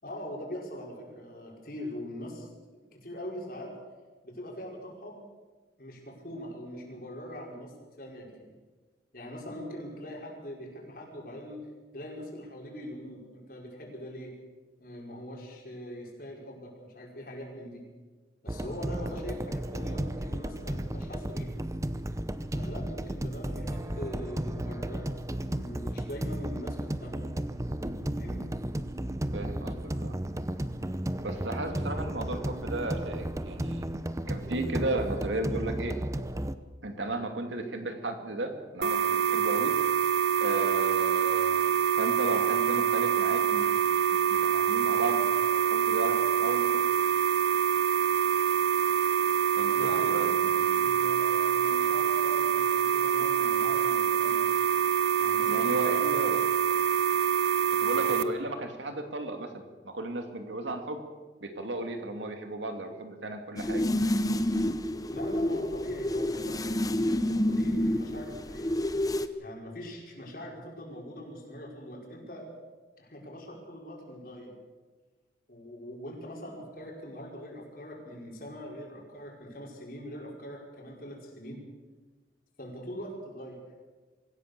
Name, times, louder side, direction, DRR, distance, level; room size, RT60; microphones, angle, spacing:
voice 1, 0.0-2.5 2.9-3.8 4.2-5.2 5.8-8.5 9.1-11.6 11.9-14.3 14.8-17.8 18.4-21.5 22.5-27.2 28.2-28.5 49.7-50.3 50.8-54.4 55.2-56.4 58.0-58.1 65.1-68.8 69.4-72.5 73.0-74.5 75.5-81.6 82.6-83.6, equal, 50° left, -1 dB, 5.3 m, -42 dB
sound 1, 18.5-36.6, right 1 dB, 15° right, 0.7 m, -34 dB
voice 2, 29.3-30.1 31.2-33.9 34.3-36.0 36.8-39.7 40.4-41.6 42.0-46.8 49.5-50.9 55.5-56.5 57.8-61.0 61.4-63.9, right 2 dB, 85° right, 5 dB, 2.7 m, -35 dB
sound 2, 38.8-58.2, right 9 dB, 60° right, 0.8 m, -25 dB
sound 3, 63.6-69.3, left 1 dB, 20° left, 0.7 m, -28 dB
25.0 x 16.0 x 6.9 m, 1.3 s
head